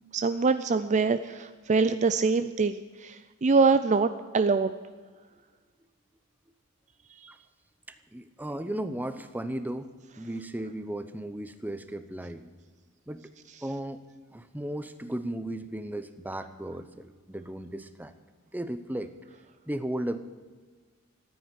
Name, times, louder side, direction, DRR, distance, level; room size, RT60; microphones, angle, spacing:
voice 1, 0.0-4.7 7.2-7.3, right 4 dB, 35° right, 11 dB, 0.4 m, -24 dB
voice 2, 7.9-12.5 13.1-13.3 13.6-14.0 14.3-18.1 18.5-19.1 19.7-20.2, right 1 dB, 10° right, 11 dB, 0.7 m, -35 dB
14.5 x 9.2 x 9.6 m, 1.5 s
head